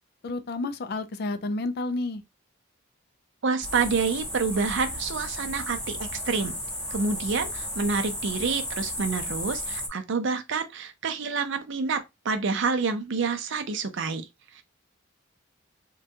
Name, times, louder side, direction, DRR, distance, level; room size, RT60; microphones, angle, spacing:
voice 1, 0.2-2.2, left 2 dB, 50° left, 0.4 m, -30 dB
voice 2, 3.4-6.5 6.9-14.3 14.6-14.7, right 4 dB, 60° right, 0.5 m, -28 dB
sound 1, 3.6-9.9, equal, 5° left, 0.8 m, -34 dB
3.6 x 2.2 x 2.7 m
head